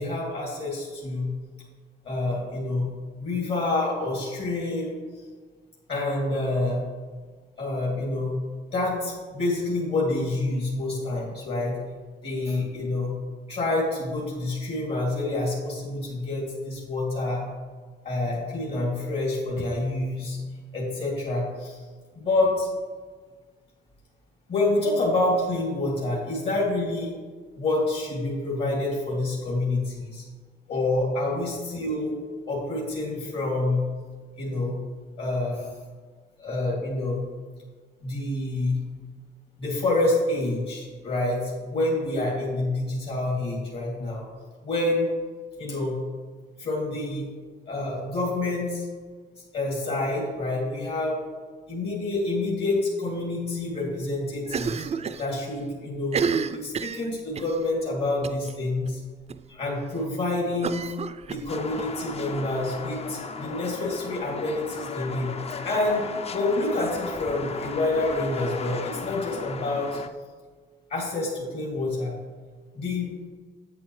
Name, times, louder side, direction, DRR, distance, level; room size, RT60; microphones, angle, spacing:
voice 1, 0.0-1.3 2.0-2.9 3.2-5.0 5.9-6.9 7.6-8.3 8.7-11.8 12.2-13.2 13.5-17.4 18.0-20.4 20.7-21.8 22.2-22.7 24.5-27.1 27.6-30.2 30.7-32.1 32.4-33.9 34.4-34.8 35.2-35.7 36.4-37.2 38.0-38.8 39.6-44.3 44.6-45.1 45.6-46.0 46.6-47.2 47.7-48.9 49.5-51.2 51.7-54.8 55.2-56.2 56.5-59.0 59.5-60.9 61.3-65.3 65.6-66.1 66.3-70.0 70.9-72.1 72.7-73.1, left 2 dB, 60° left, -4 dB, 2.5 m, -27 dB
Cough, 54.5-55.3 55.5-55.6 56.0-57.6 58.2-58.5 58.8-58.9 59.3-59.4 60.6-61.9, right 6 dB, 35° right, 0.4 m, -30 dB
sound 1, 61.5-70.1, left 5 dB, 30° left, 0.5 m, -36 dB
8.6 x 8.4 x 3.2 m, 1.5 s
cardioid pair, 90°, 20 cm